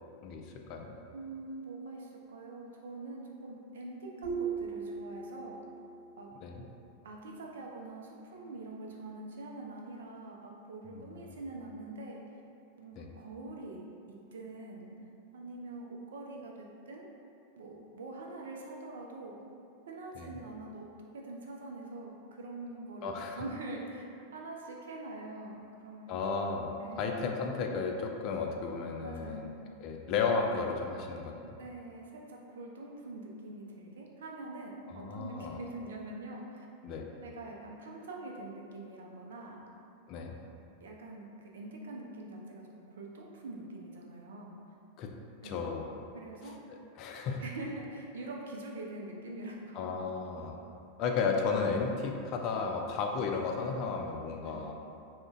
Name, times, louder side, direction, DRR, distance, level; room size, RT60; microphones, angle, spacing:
voice 1, 0.2-0.9 6.4-6.6 10.9-11.3 13.0-13.1 20.2-20.3 23.0-23.4 26.1-29.5 29.8-31.6 34.9-35.6 36.8-37.1 40.1-40.4 45.0-45.1 45.4-46.0 46.4-46.5 47.0-47.4 49.8-50.6 51.0-54.7, left 4 dB, 45° left, 2 dB, 0.3 m, -34 dB
voice 2, 1.1-5.6 6.2-6.3 7.0-12.2 12.8-14.9 15.3-17.1 17.6-19.4 19.9-20.9 21.1-23.1 23.4-24.0 24.3-26.2 26.8-27.2 29.0-29.6 31.6-36.7 37.2-39.6 40.8-44.6 45.4-45.8 46.1-46.5 47.4-50.1 54.4-54.7, right 2 dB, 75° right, -1 dB, 0.4 m, -44 dB
sound 1, 4.2-5.9, right 6 dB, 50° right, 1.0 m, -37 dB
2.4 x 2.1 x 3.8 m, 2.6 s
hypercardioid pair, 95°, 0 cm